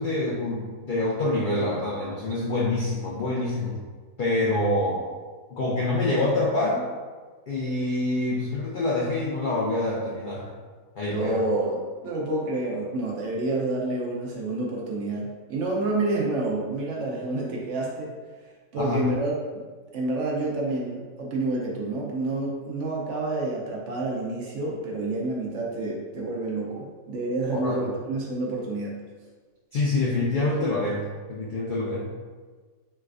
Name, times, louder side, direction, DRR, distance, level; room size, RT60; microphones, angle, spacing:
voice 1, 0.0-3.8 4.2-5.0 5.5-6.8 7.5-10.5 11.0-11.5 18.8-19.1 27.5-27.9 29.7-31.0 31.3-32.1, left 2 dB, 75° left, -5 dB, 0.4 m, -26 dB
voice 2, 11.1-11.8 12.0-18.1 18.7-19.6 19.9-29.0, right 2 dB, 65° right, -2 dB, 0.9 m, -28 dB
3.2 x 3.1 x 2.4 m, 1.4 s
omnidirectional pair, 1.5 m